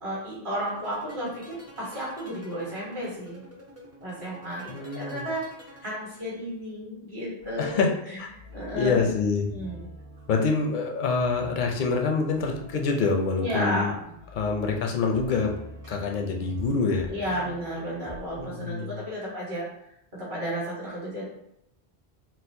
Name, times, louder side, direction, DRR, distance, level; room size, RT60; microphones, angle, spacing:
voice 1, 0.0-3.4 4.0-5.5 5.8-7.8 8.5-9.1 9.5-9.8 13.4-13.9 17.1-19.6 20.1-21.2, equal, 55° right, -6 dB, 1.5 m, -32 dB
sound 1, 0.5-6.4, equal, 20° right, 0.4 m, -49 dB
voice 2, 4.7-5.3 7.6-8.3 8.7-9.5 10.3-14.0 14.3-15.6 15.9-17.1 18.4-19.0, left 4 dB, 60° left, 2 dB, 0.6 m, -26 dB
sound 2, 7.4-18.4, right 1 dB, 75° right, 1.3 m, -47 dB
4.1 x 2.0 x 2.6 m, 0.76 s
omnidirectional pair, 1.1 m